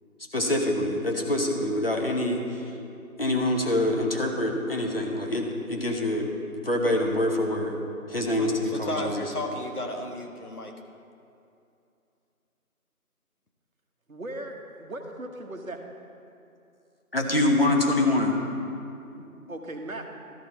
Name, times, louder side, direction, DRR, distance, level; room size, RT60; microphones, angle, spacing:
voice 1, 0.3-2.4 3.2-6.3 6.6-7.8 8.1-9.2 17.1-18.4, left 1 dB, 40° left, 1 dB, 1.1 m, -25 dB
voice 2, 8.4-10.7, left 1 dB, 85° left, 2 dB, 1.5 m, -33 dB
voice 3, 14.1-15.8 19.5-20.1, right 1 dB, 65° right, 4 dB, 1.2 m, -37 dB
13.0 x 5.5 x 4.3 m, 2.6 s
figure-of-eight pair, 170°, 44 cm